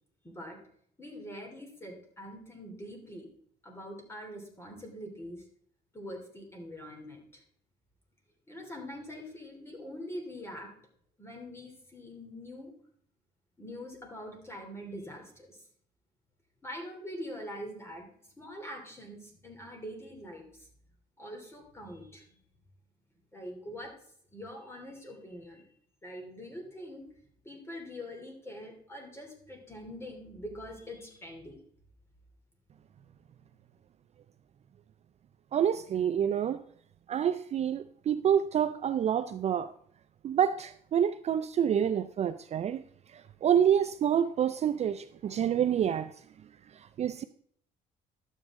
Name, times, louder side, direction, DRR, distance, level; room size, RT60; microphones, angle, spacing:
voice 1, 0.2-0.6 1.0-3.2 3.6-5.4 5.9-7.4 8.5-10.7 11.2-12.7 13.6-15.6 16.6-18.1 18.4-20.5 21.2-22.4 23.3-23.9 24.3-25.6 26.0-27.0 27.4-31.6, equal, 15° left, 3.0 m, -44 dB
voice 2, 35.5-36.6 37.1-39.7 40.2-42.8 43.1-46.1 47.0-47.2, right 9 dB, 40° right, 0.4 m, -27 dB
11.5 x 8.2 x 3.6 m
cardioid pair, 110°, 17 cm